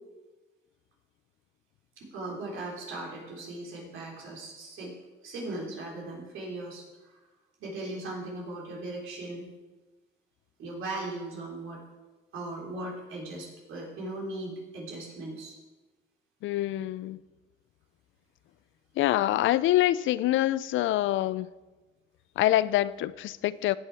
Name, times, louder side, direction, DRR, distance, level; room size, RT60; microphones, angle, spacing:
voice 1, 2.0-4.9 5.2-7.1 7.6-9.5 10.6-11.8 12.3-15.6, right 2 dB, 80° right, 3.5 m, -38 dB
voice 2, 16.4-17.2 19.0-21.5 22.4-23.8, left 14 dB, 75° left, 0.4 m, -25 dB
17.0 x 6.3 x 4.7 m
cardioid pair, 90°, 20 cm